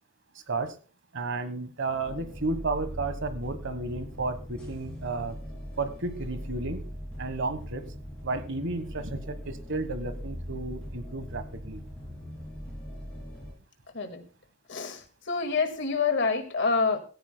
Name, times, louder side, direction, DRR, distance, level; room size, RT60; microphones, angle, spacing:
voice 1, 1.1-5.4 5.8-6.8 7.2-7.9 8.2-11.8, right 3 dB, 60° right, 11 dB, 1.3 m, -32 dB
sound 1, 2.0-13.5, equal, 5° left, 7.7 m, -40 dB
voice 2, 14.7-17.0, left 4 dB, 60° left, 7 dB, 1.9 m, -27 dB
16.5 x 14.5 x 2.2 m, 0.37 s
head